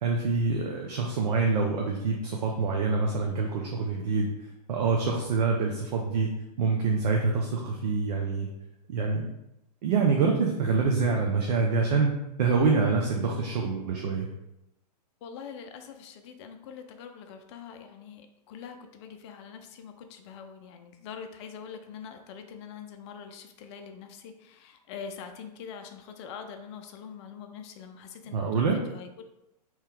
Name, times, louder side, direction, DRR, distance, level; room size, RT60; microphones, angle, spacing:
voice 1, 0.0-4.3 4.7-6.3 6.6-8.5 8.9-9.3 9.8-12.1 12.4-14.3 28.3-28.8, right 4 dB, 70° right, 0 dB, 0.6 m, -26 dB
voice 2, 15.2-29.2, left 6 dB, 45° left, 6 dB, 0.4 m, -44 dB
3.1 x 2.8 x 3.4 m, 0.88 s
hypercardioid pair, 120°, 21 cm